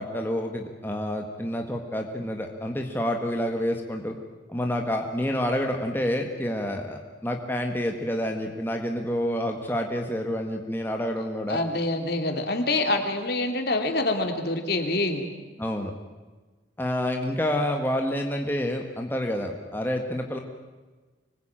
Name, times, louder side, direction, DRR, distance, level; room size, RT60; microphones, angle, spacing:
voice 1, 0.0-4.2 4.5-11.6 15.6-15.9 16.8-20.4, equal, 10° left, 2 dB, 1.7 m, -28 dB
voice 2, 11.5-15.2, left 2 dB, 55° left, 5 dB, 3.0 m, -26 dB
25.5 x 21.0 x 9.1 m, 1.3 s
head